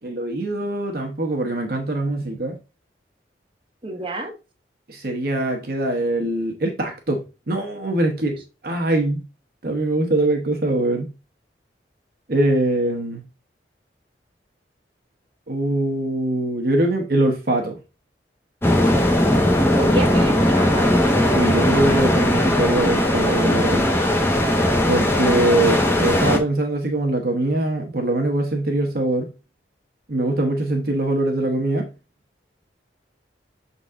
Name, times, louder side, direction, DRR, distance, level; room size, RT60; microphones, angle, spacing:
voice 1, 0.0-2.6 4.9-9.2 9.6-11.1 12.3-13.2 15.5-17.8 21.3-23.9 24.9-29.3 30.1-31.9, right 1 dB, 55° right, 1.0 m, -22 dB
voice 2, 3.8-4.3 19.7-21.0, right 1 dB, 30° right, 1.3 m, -28 dB
sound 1, 18.6-26.4, left 1 dB, 15° left, 0.9 m, -18 dB
6.6 x 4.1 x 3.6 m
head